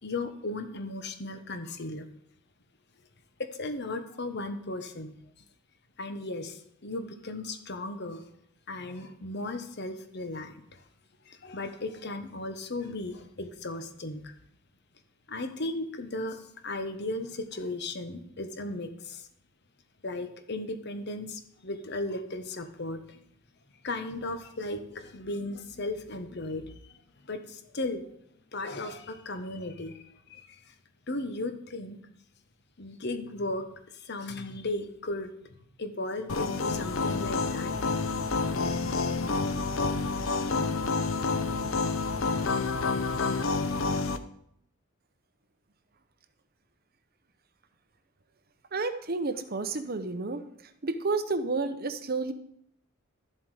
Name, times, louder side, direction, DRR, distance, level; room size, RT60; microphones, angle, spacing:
voice 1, 0.0-2.1 3.4-5.1 6.0-8.2 8.7-10.8 11.2-14.3 15.3-19.3 20.0-23.2 23.8-27.0 27.2-28.0 28.5-30.7 31.1-32.0 32.8-33.7 33.9-37.7, left 2 dB, 55° left, 8 dB, 1.2 m, -36 dB
sound 1, 36.3-44.2, left 3 dB, 85° left, 0.8 m, -28 dB
voice 2, 48.7-50.4 50.8-52.3, right 3 dB, 50° right, 10 dB, 0.9 m, -30 dB
13.0 x 7.6 x 4.9 m, 0.71 s
head